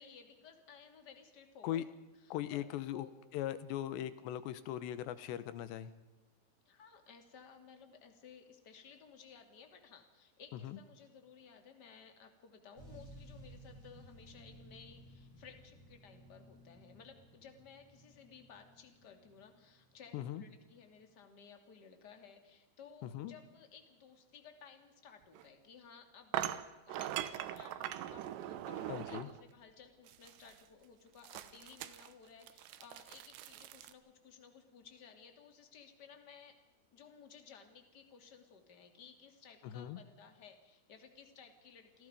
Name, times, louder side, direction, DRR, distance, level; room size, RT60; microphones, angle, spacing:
voice 1, 0.0-1.9 2.2-3.1 6.7-36.6 36.9-42.1, left 6 dB, 30° left, 5 dB, 2.2 m, -57 dB
voice 2, 2.3-3.1 3.3-5.9 10.5-10.8 20.1-20.4 23.0-23.4 28.9-29.3 39.6-40.0, left 12 dB, 90° left, 14 dB, 3.3 m, -39 dB
sound 1, 12.8-20.3 21.0-21.1, right 1 dB, 45° right, 8.6 m, -57 dB
sound 2, 25.3-25.4 26.3-29.4 30.1-30.6 31.2-33.9, right 12 dB, 90° right, 3.2 m, -42 dB
28.5 x 18.0 x 5.1 m, 1.1 s
omnidirectional pair, 5.0 m